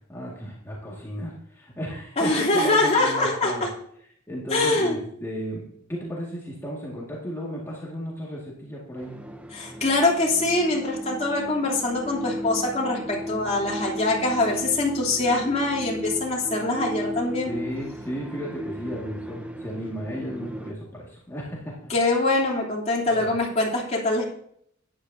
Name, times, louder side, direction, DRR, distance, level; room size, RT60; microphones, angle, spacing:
voice 1, 0.1-3.7 4.3-9.2 17.5-21.9 23.1-23.3, equal, 15° left, -5 dB, 1.9 m, -34 dB
voice 2, 2.2-3.7 4.5-5.0 9.5-17.5 21.9-24.3, left 2 dB, 30° left, -4 dB, 3.0 m, -23 dB
sound 1, 9.0-20.7, equal, 5° right, 0.6 m, -35 dB
13.0 x 10.0 x 2.7 m, 0.68 s
head